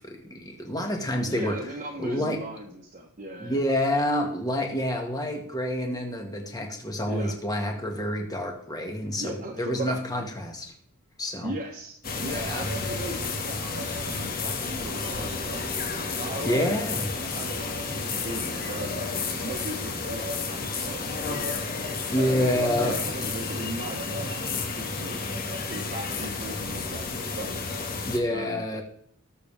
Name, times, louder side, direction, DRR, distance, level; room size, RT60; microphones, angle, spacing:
voice 1, 0.0-1.6 2.0-2.4 3.4-10.6 11.2-11.5 12.2-12.7 16.4-17.0 22.1-23.0 28.0-28.8, left 1 dB, 20° left, 2 dB, 1.9 m, -28 dB
voice 2, 1.2-3.6 7.1-7.4 9.2-10.3 11.4-15.6 16.2-21.4 22.1-25.2 25.7-27.6 28.3-28.6, right 1 dB, 35° right, -1 dB, 1.3 m, -38 dB
sound 1, 12.0-28.2, left 4 dB, 45° left, 1.9 m, -31 dB
19.5 x 7.0 x 3.6 m, 0.64 s
head